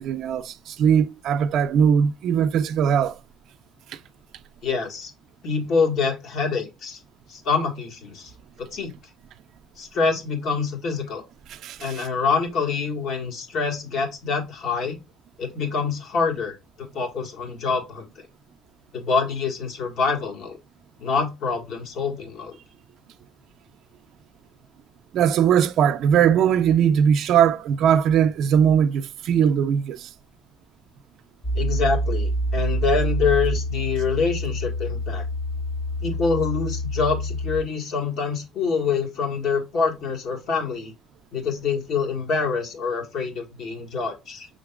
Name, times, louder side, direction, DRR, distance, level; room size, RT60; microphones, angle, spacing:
voice 1, 0.0-3.2 11.5-12.1 25.1-30.1, right 8 dB, 65° right, 0.5 m, -20 dB
voice 2, 4.6-5.1 5.4-7.0 7.3-8.3 8.6-8.9 9.8-11.2 11.8-15.0 15.4-18.1 18.9-20.6 21.0-22.6 31.5-35.2 36.0-40.9 41.3-44.5, left 5 dB, 65° left, 1.7 m, -25 dB
sound 1, 31.4-37.6, equal, 25° left, 1.1 m, -27 dB
5.8 x 3.7 x 2.4 m
supercardioid pair, 95°, 0 cm